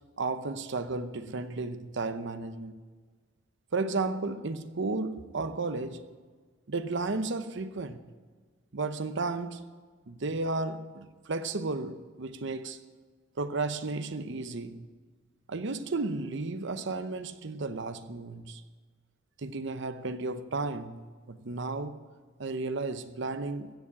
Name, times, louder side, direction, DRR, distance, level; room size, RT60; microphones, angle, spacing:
voice 1, 0.2-2.8 3.7-6.0 6.7-8.0 8.7-9.7 10.1-12.8 13.4-14.9 15.5-18.6 19.4-22.0 22.4-23.7, right 3 dB, 65° right, 0.8 m, -33 dB
16.0 x 7.3 x 8.5 m
head